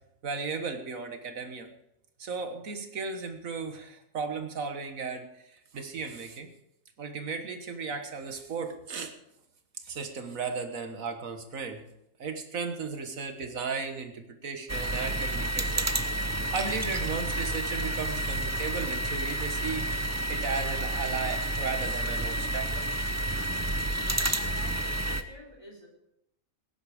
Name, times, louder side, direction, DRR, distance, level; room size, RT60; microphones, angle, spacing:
voice 1, 0.2-1.7 2.2-6.5 7.0-9.1 9.8-11.8 12.2-15.9 16.5-22.9, right 5 dB, 90° right, 6 dB, 1.8 m, -35 dB
sound 1, 14.7-25.2, right 1 dB, 20° right, 0.5 m, -30 dB
voice 2, 24.0-25.9, equal, 25° left, 0 dB, 3.6 m, -48 dB
18.0 x 9.9 x 5.0 m, 0.81 s
omnidirectional pair, 1.4 m